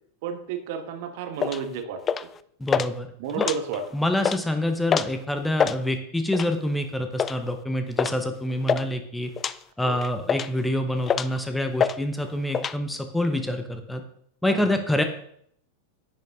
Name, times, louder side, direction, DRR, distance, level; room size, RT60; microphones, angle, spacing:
voice 1, 0.2-2.3 2.7-2.8 3.2-3.9 8.7-8.8 9.8-10.0 14.5-14.6, right 6 dB, 50° right, 9 dB, 1.3 m, -32 dB
sound 1, 1.4-1.6 2.1-2.4 2.7-2.9 3.3-3.9 4.2-4.4 4.9-5.1 5.4-5.8 6.3-6.6 7.2-7.4 8.0-8.2 8.4-8.9 9.4-9.6 10.0-10.6 11.1-11.4 11.8-12.0 12.2-12.8, left 7 dB, 25° left, 0.4 m, -25 dB
voice 2, 2.6-3.1 3.4-3.5 3.9-9.3 9.8-14.0 14.4-15.0, left 1 dB, 5° left, 7 dB, 1.0 m, -26 dB
10.0 x 9.3 x 3.7 m, 0.67 s
figure-of-eight pair, 90°, 0 cm